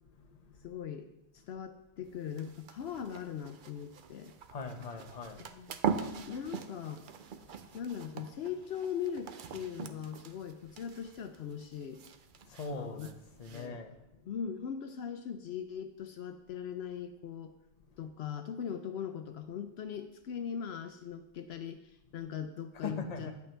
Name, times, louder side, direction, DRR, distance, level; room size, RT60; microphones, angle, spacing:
voice 1, 0.0-0.7 4.5-5.5 5.9-6.3 7.4-7.8 12.4-14.2 17.9-18.1 22.7-23.3, left 4 dB, 40° left, 4 dB, 0.9 m, -42 dB
voice 2, 0.6-4.3 5.4-5.8 6.3-7.1 7.7-12.0 12.7-13.1 13.5-13.8 14.3-17.5 18.0-23.3, left 8 dB, 70° left, 8 dB, 0.8 m, -40 dB
sound 1, 2.1-13.7, right 7 dB, 55° right, 0.7 m, -42 dB
10.5 x 8.2 x 3.3 m, 0.89 s
omnidirectional pair, 1.1 m